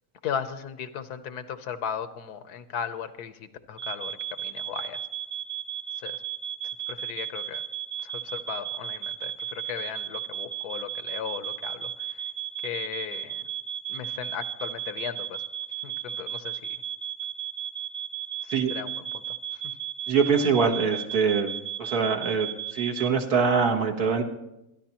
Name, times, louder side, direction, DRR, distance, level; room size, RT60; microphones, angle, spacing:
voice 1, 0.2-5.0 6.0-6.2 6.9-7.6 8.0-12.2 12.6-13.4 13.9-15.4 15.8-16.6 18.4-19.6, left 8 dB, 80° left, 11 dB, 1.4 m, -36 dB
sound 1, 3.8-23.1, right 10 dB, 50° right, 0.7 m, -35 dB
voice 2, 20.1-21.5 21.8-24.2, right 5 dB, 70° right, 4 dB, 1.8 m, -24 dB
27.0 x 11.0 x 2.9 m, 0.90 s
omnidirectional pair, 1.7 m